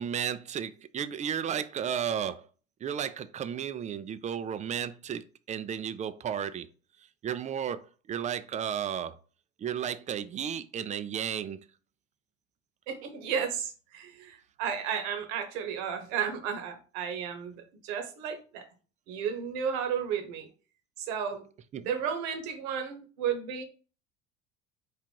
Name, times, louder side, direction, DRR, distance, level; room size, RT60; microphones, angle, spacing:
voice 1, 0.0-2.5 2.8-6.7 7.2-9.2 9.6-11.6 21.7-21.9, right 8 dB, 20° right, 0.3 m, -33 dB
voice 2, 12.9-18.7 19.1-20.5 21.0-21.4 21.8-23.6, right 7 dB, 60° right, 1.0 m, -33 dB
4.6 x 2.5 x 4.5 m
figure-of-eight pair, 60°, 35 cm